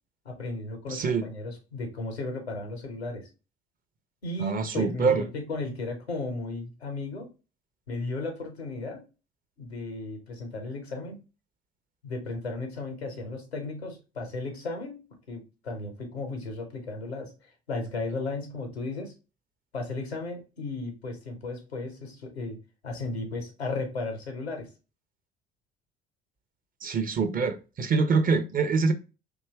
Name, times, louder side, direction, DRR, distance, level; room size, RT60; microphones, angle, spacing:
voice 1, 0.2-3.3 4.2-7.3 7.9-9.0 9.6-11.2 12.0-17.3 17.7-19.1 19.7-22.6 22.8-24.7, left 3 dB, 90° left, 0.7 m, -35 dB
voice 2, 0.9-1.2 4.4-5.2 26.8-28.9, right 4 dB, 30° right, 0.5 m, -25 dB
2.7 x 2.2 x 3.1 m
figure-of-eight pair, 50°, 31 cm